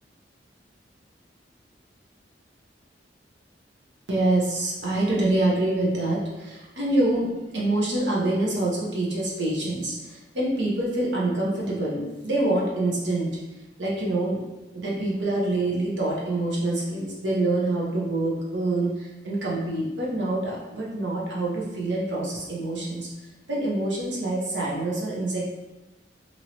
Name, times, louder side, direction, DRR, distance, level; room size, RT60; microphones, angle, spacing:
voice 1, 4.1-13.3 13.8-14.4 14.7-23.1 23.5-25.4, right 2 dB, 90° right, -5 dB, 0.9 m, -26 dB
3.0 x 2.7 x 2.9 m, 1.1 s
head